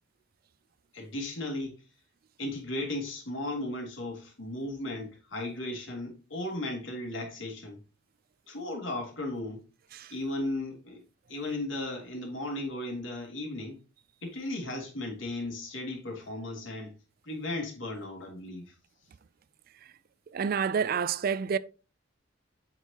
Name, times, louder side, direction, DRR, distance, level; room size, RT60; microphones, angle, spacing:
voice 1, 0.9-1.7 2.4-7.8 8.5-9.6 10.1-11.0 11.3-13.8 14.2-16.9 17.2-18.7, left 1 dB, 75° left, 2.9 m, -36 dB
voice 2, 20.3-21.6, right 6 dB, 50° right, 0.4 m, -28 dB
7.9 x 6.4 x 2.9 m
head